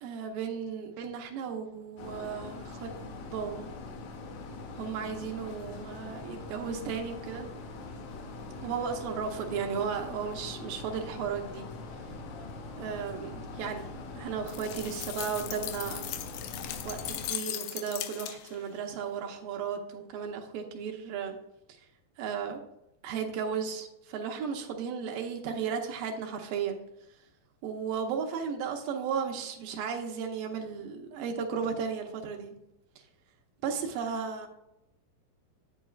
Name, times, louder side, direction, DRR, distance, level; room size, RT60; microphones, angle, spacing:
voice 1, 0.0-3.7 4.8-7.5 8.6-11.7 12.8-13.9 14.1-16.2 16.8-21.4 22.2-22.6 23.0-26.8 27.6-32.5 33.6-34.5, right 6 dB, 80° right, 3 dB, 2.4 m, -35 dB
sound 1, 2.0-17.3, left 3 dB, 70° left, 1.9 m, -42 dB
sound 2, 14.5-18.7, left 12 dB, 85° left, 2.3 m, -38 dB
8.2 x 8.2 x 2.4 m, 0.89 s
omnidirectional pair, 4.0 m